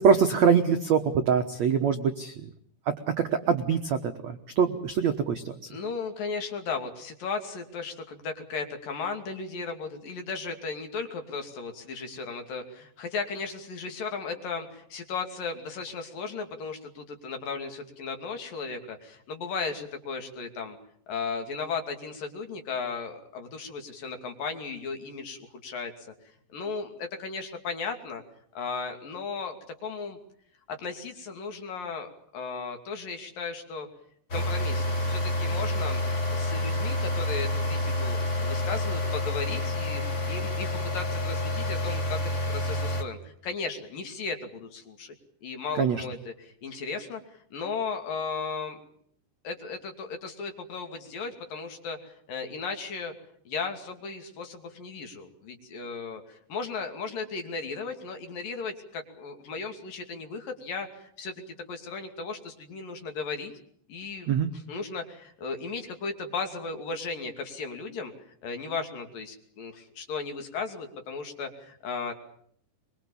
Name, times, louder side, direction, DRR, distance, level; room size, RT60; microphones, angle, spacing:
voice 1, 0.0-2.5 2.8-5.6 45.7-46.0 64.3-64.5, right 6 dB, 70° right, 6 dB, 1.7 m, -24 dB
voice 2, 5.7-20.8 21.1-26.1 26.5-28.2 28.5-30.2 30.7-33.9 34.3-36.0 36.3-42.2 42.5-45.1 45.4-48.8 49.4-53.1 53.5-61.3 61.7-63.5 63.9-68.1 68.4-72.1, left 4 dB, 55° left, 5 dB, 4.0 m, -36 dB
sound 1, 34.3-43.0, left 1 dB, 30° left, 1.4 m, -28 dB
24.0 x 23.0 x 7.2 m, 0.65 s
omnidirectional pair, 5.1 m